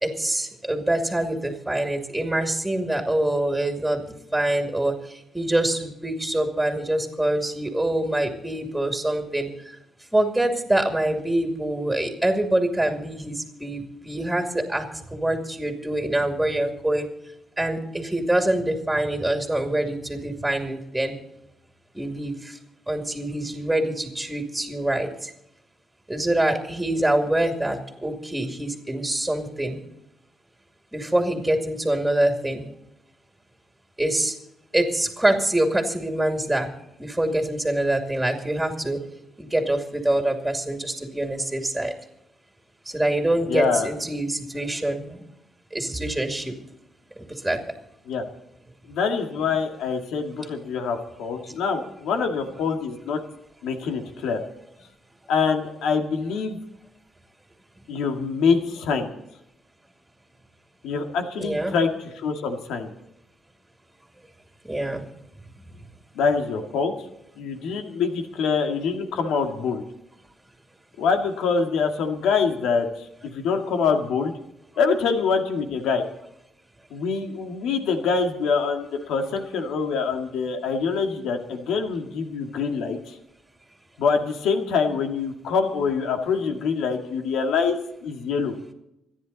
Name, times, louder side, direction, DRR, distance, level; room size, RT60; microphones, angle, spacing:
voice 1, 0.0-4.9 5.3-9.5 10.1-17.1 17.6-21.1 21.9-22.6 22.9-25.3 26.1-29.8 30.9-32.7 34.0-34.3 34.7-36.7 37.0-39.0 39.4-41.9 42.9-45.2 45.7-46.5 47.2-47.6 61.4-61.7 64.6-65.0, right 1 dB, 5° right, 4 dB, 2.5 m, -25 dB
voice 2, 43.5-43.9 48.1-48.2 48.9-53.2 53.6-54.4 55.3-56.6 57.9-59.1 60.8-61.9 62.2-62.9 66.1-66.9 67.4-69.8 71.0-72.9 73.3-74.3 74.8-76.0 76.9-83.2 84.0-88.5, left 5 dB, 90° left, 4 dB, 2.0 m, -25 dB
26.0 x 10.0 x 4.1 m, 0.84 s
cardioid pair, 110°, 0 cm